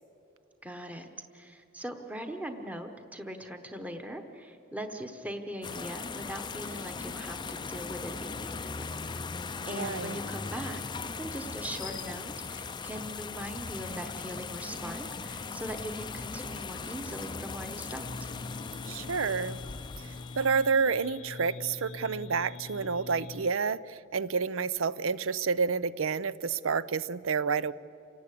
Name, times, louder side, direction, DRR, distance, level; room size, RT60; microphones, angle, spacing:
voice 1, 0.6-9.0 9.7-18.3, equal, 5° right, 5 dB, 1.0 m, -40 dB
sound 1, 5.6-20.9, left 4 dB, 20° left, 0.5 m, -39 dB
voice 2, 9.6-10.2 18.9-19.6 20.0-20.1 20.4-27.7, right 5 dB, 85° right, 17 dB, 0.6 m, -29 dB
sound 2, 18.0-23.5, left 3 dB, 75° left, 0.8 m, -44 dB
28.0 x 18.5 x 8.5 m, 2.8 s
head